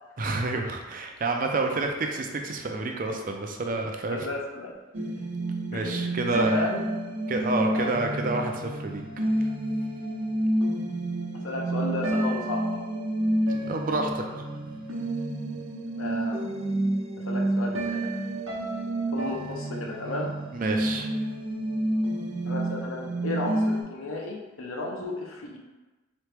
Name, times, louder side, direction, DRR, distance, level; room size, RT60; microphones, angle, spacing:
voice 1, 0.2-4.2 5.7-6.7 7.3-9.0 9.4-9.5 13.7-14.4 20.5-21.1, right 3 dB, 40° right, 3 dB, 0.4 m, -29 dB
voice 2, 4.1-4.7 5.7-6.8 11.4-12.8 16.0-16.4 17.2-18.0 19.1-20.3 22.5-25.6, left 2 dB, 80° left, 0 dB, 0.7 m, -33 dB
sound 1, 4.9-23.8, right 1 dB, 75° right, 0.8 m, -29 dB
3.9 x 3.0 x 3.3 m, 1.2 s
head